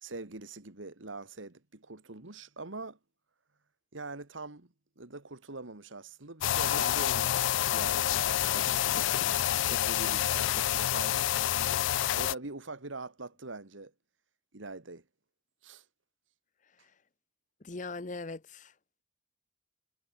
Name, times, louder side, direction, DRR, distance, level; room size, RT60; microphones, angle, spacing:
voice 1, 0.0-3.0 3.9-9.1 9.4-11.9 12.1-13.9 14.5-15.0 15.6-15.8, right 3 dB, 85° right, 2.0 m, -43 dB
sound 1, 6.4-12.3, left 12 dB, 75° left, 0.3 m, -28 dB
voice 2, 17.6-18.7, left 3 dB, 40° left, 0.8 m, -40 dB
head